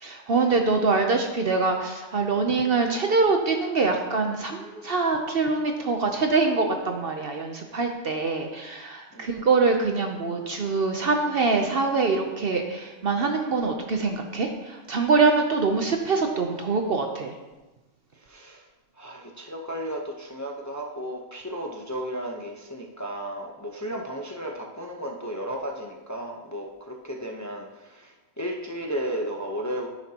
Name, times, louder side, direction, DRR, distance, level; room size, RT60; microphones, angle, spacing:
voice 1, 0.0-17.3, right 4 dB, 50° right, 4 dB, 0.8 m, -24 dB
voice 2, 9.1-9.5 18.1-18.7 19.0-29.9, equal, 15° left, 0 dB, 0.7 m, -34 dB
10.0 x 9.6 x 2.9 m, 1.1 s
omnidirectional pair, 1.4 m